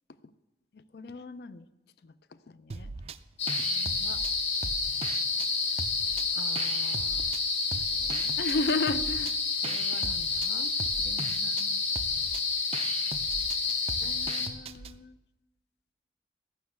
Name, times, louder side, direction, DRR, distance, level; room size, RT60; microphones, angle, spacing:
voice 1, 0.7-1.6 2.0-2.1 2.5-2.9 3.6-4.2 6.3-7.3 7.9-10.7 11.0-11.8 14.0-15.2, left 3 dB, 60° left, 14 dB, 0.5 m, -37 dB
sound 1, 2.7-3.2 3.5-5.5 5.8-7.4 7.7-15.0, right 4 dB, 35° right, 0.4 m, -40 dB
sound 2, 3.4-14.5, left 4 dB, 85° left, 1.7 m, -29 dB
13.0 x 6.3 x 8.0 m, 1.1 s
head